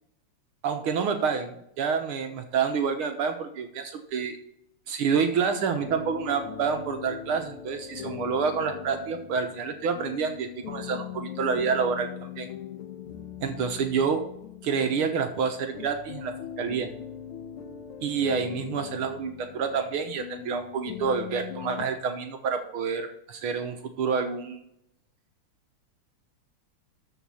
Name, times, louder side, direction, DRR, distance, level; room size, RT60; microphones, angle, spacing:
voice 1, 0.6-4.4 4.9-12.1 12.4-12.5 13.4-14.3 14.6-16.9 18.0-24.6, right 6 dB, 75° right, 6 dB, 1.9 m, -28 dB
sound 1, 5.8-21.9, left 10 dB, 75° left, 1.7 m, -40 dB
13.5 x 4.9 x 7.0 m, 0.77 s
omnidirectional pair, 2.4 m